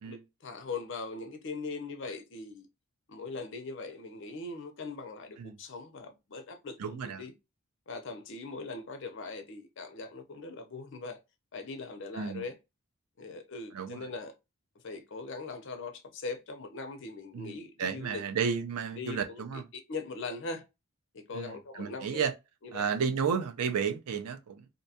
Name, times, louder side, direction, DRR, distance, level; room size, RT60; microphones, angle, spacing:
voice 1, 0.0-2.7 3.1-7.3 7.9-11.2 11.5-12.6 13.2-14.3 14.8-18.2 19.0-20.6 21.1-22.3 22.6-22.8, left 3 dB, 55° left, 0.5 m, -41 dB
voice 2, 6.8-7.2 12.1-12.5 13.7-14.1 17.3-19.7 21.3-22.3 22.7-24.7, right 6 dB, 90° right, 0.5 m, -32 dB
2.6 x 2.2 x 2.6 m
head